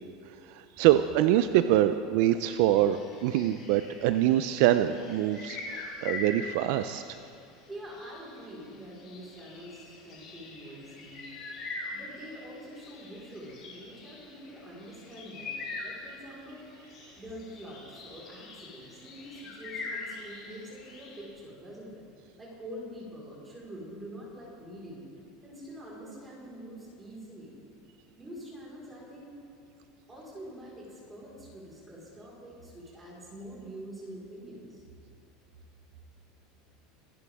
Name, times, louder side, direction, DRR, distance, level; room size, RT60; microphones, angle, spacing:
voice 1, 0.8-7.0, right 12 dB, 65° right, 11 dB, 0.4 m, -24 dB
sound 1, 2.4-21.3, left 3 dB, 45° left, 3.9 m, -44 dB
voice 2, 7.7-11.3 11.9-16.6 17.2-22.0 22.4-25.0 25.4-27.5 28.2-29.4 30.1-34.8, equal, 10° right, -6 dB, 4.5 m, -45 dB
25.5 x 11.0 x 3.6 m, 2.3 s
supercardioid pair, 145°, 0 cm